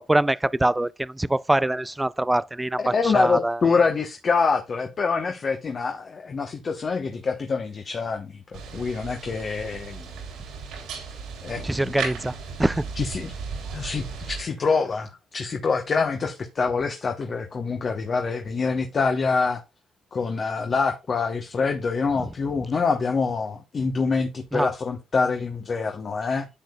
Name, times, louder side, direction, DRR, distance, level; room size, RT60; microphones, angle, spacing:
voice 1, 0.0-3.6 11.6-12.9 24.5-24.7, right 1 dB, 10° right, 0.3 m, -24 dB
voice 2, 2.8-10.1 11.4-12.0 12.9-13.3 13.7-19.6 20.1-26.5, left 4 dB, 45° left, 0.9 m, -25 dB
Padlocked Gate on Stormy Night, 8.5-14.4, right 5 dB, 90° right, 2.9 m, -36 dB
10.0 x 6.7 x 2.3 m
cardioid pair, 90°, 0 cm